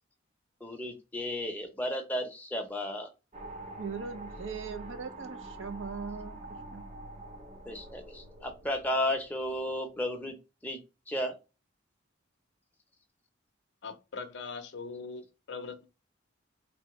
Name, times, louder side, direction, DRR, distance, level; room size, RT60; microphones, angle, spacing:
voice 1, 0.6-3.1 7.7-10.4 10.6-10.8 11.1-11.3, left 1 dB, 10° left, 0.6 m, -33 dB
sound 1, 3.3-9.8, right 1 dB, 30° right, 0.7 m, -46 dB
voice 2, 3.8-6.8, right 5 dB, 75° right, 0.6 m, -40 dB
voice 3, 13.8-16.0, left 4 dB, 60° left, 0.5 m, -41 dB
3.3 x 2.7 x 2.9 m
head